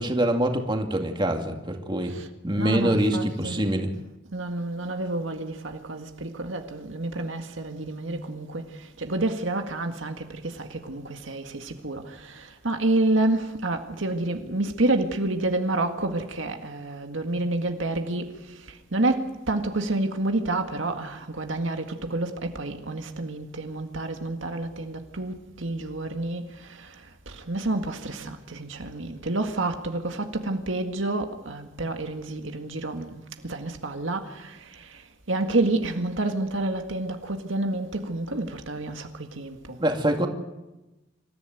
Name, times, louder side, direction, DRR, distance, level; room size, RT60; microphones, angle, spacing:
voice 1, 0.0-2.1 2.4-3.9 39.8-40.3, right 1 dB, 25° right, 2.4 m, -24 dB
voice 2, 2.6-3.6 4.3-39.8, right 2 dB, 75° right, 1.9 m, -29 dB
26.5 x 14.5 x 9.3 m
head